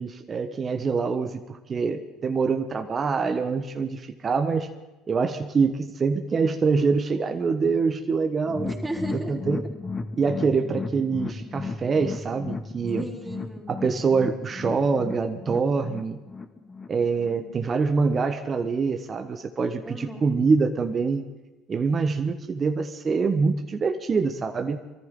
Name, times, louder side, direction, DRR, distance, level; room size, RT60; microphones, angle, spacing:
voice 1, 0.0-4.7 5.1-8.6 9.3-9.7 10.2-13.1 13.7-16.2 16.9-21.2 21.7-24.8, right 4 dB, 35° right, 6 dB, 1.3 m, -25 dB
sound 1, 8.5-17.7 18.1-18.2 18.6-18.7, left 3 dB, 30° left, 1.6 m, -35 dB
voice 2, 8.6-9.3 13.0-13.7 17.3-17.4 19.9-20.4, right 1 dB, 15° right, -3 dB, 4.4 m, -35 dB
24.0 x 14.0 x 3.8 m, 1.1 s
hypercardioid pair, 75°, 0 cm